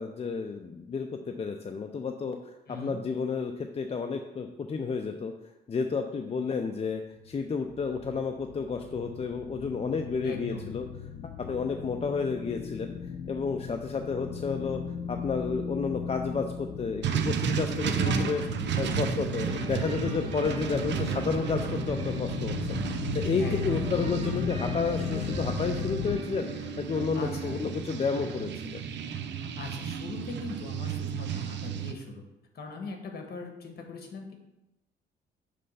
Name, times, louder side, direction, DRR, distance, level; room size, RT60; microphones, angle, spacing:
voice 1, 0.0-5.3 5.7-10.9 11.5-12.9 13.3-14.8 15.1-18.4 18.8-22.5 22.8-28.8, left 5 dB, 30° left, 5 dB, 0.5 m, -31 dB
voice 2, 2.7-3.0 10.2-10.7 18.0-19.1 23.4-23.8 27.1-27.6 29.5-32.2 32.5-34.3, left 3 dB, 50° left, 3 dB, 1.4 m, -40 dB
sound 1, 7.2-26.2, left 7 dB, 75° left, 0.6 m, -37 dB
sound 2, 17.0-31.9, right 7 dB, 65° right, 0.6 m, -33 dB
sound 3, 19.5-29.1, equal, 25° right, 1.2 m, -45 dB
6.4 x 3.3 x 5.5 m, 0.95 s
cardioid pair, 90°, 20 cm